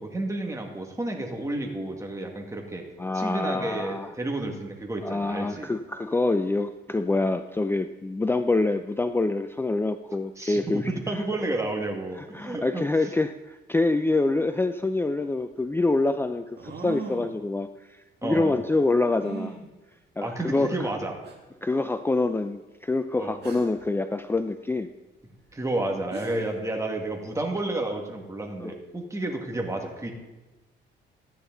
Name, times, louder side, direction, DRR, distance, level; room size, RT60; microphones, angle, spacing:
voice 1, 0.0-2.8 3.1-5.7 10.4-12.8 18.2-18.5 20.2-21.2 23.2-23.4 25.5-30.1, right 2 dB, 15° right, 1 dB, 2.0 m, -31 dB
voice 2, 3.0-4.1 5.0-11.2 12.2-19.6 20.2-20.8 21.6-24.9 28.6-28.7, left 2 dB, 10° left, 9 dB, 0.4 m, -26 dB
sound 1, 15.1-15.2 16.6-17.4 19.2-19.6 20.6-20.7 21.2-21.3 23.4-23.8 25.7-25.8 26.1-26.6, right 5 dB, 55° right, 2.1 m, -38 dB
13.5 x 9.8 x 3.9 m, 1.1 s
cardioid pair, 90°, 20 cm